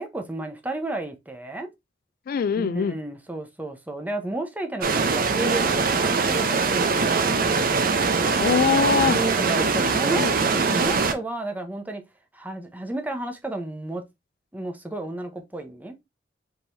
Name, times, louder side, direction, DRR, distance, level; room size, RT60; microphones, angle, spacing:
voice 1, 0.0-1.7 2.6-7.4 9.1-12.0 12.3-14.0 14.5-16.0, right 2 dB, 10° right, 0.8 m, -32 dB
voice 2, 2.3-3.0 8.4-9.2 9.8-10.3, left 6 dB, 50° left, 0.3 m, -23 dB
sound 1, 4.8-11.1, right 4 dB, 55° right, 0.7 m, -22 dB
4.9 x 3.8 x 2.6 m
head